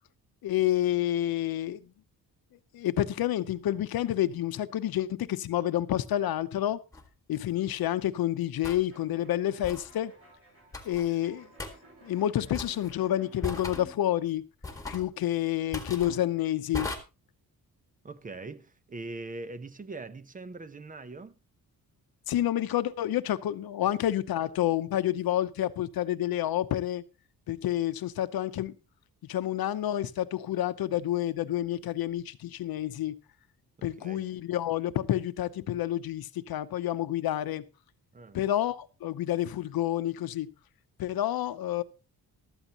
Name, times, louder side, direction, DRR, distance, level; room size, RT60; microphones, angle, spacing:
voice 1, 0.4-1.8 2.7-6.8 7.3-10.1 10.8-11.5 12.0-14.4 14.9-16.9 22.3-27.0 27.5-28.7 29.2-33.2 33.8-37.6 38.3-40.5 41.0-41.8, left 12 dB, 70° left, 0.9 m, -29 dB
sound 1, 6.9-7.1 8.6-8.8 9.6-9.9 10.7-11.1 11.6-11.7 12.5-12.9 13.4-13.9 14.6-15.1 15.7-16.1 16.7-17.0, left 2 dB, 10° left, 1.8 m, -37 dB
sound 2, 8.9-13.9, right 3 dB, 35° right, 7.5 m, -55 dB
voice 2, 18.0-21.4 23.8-24.0 33.8-34.3 38.1-38.4, right 3 dB, 20° right, 0.7 m, -42 dB
14.5 x 13.0 x 3.0 m
wide cardioid pair, 155°, 38 cm